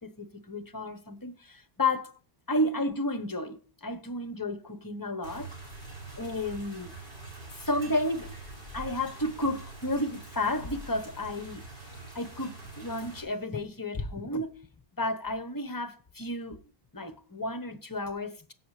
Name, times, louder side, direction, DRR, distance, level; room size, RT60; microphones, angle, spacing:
voice 1, 0.0-2.1 2.5-5.5 6.2-6.9 7.5-8.3 8.7-11.6 12.1-14.6 15.0-16.6 16.9-18.5, left 1 dB, 20° left, 0.9 m, -32 dB
sound 1, 5.2-13.2, right 2 dB, 55° right, 4.6 m, -45 dB
15.5 x 5.8 x 3.2 m
omnidirectional pair, 1.0 m